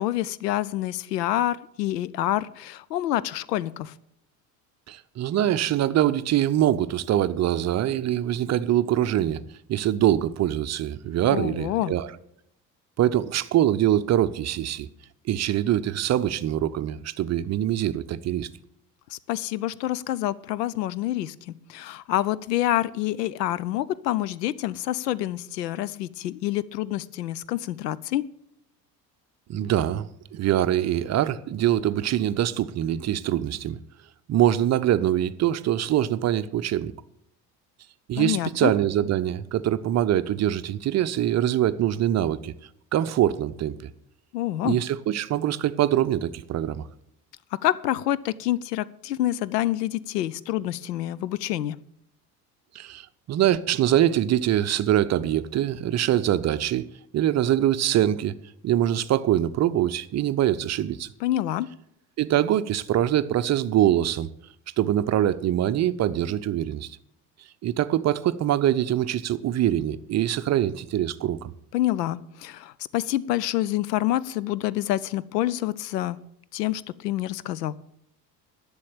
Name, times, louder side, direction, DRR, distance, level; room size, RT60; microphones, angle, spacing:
voice 1, 0.0-3.9 11.3-11.9 19.1-28.3 38.2-38.7 44.3-44.8 47.6-51.8 61.2-61.7 71.7-76.2 76.5-77.8, left 14 dB, 70° left, 0.7 m, -27 dB
voice 2, 4.9-9.4 9.7-12.1 13.0-14.9 15.3-18.5 29.5-33.8 34.3-36.9 38.1-42.5 42.9-43.9 44.6-46.9 52.7-56.9 57.1-58.3 58.6-61.1 62.2-64.3 64.8-67.0 67.6-71.5, right 12 dB, 35° right, 0.6 m, -24 dB
11.5 x 7.1 x 8.4 m
figure-of-eight pair, 55°, 50 cm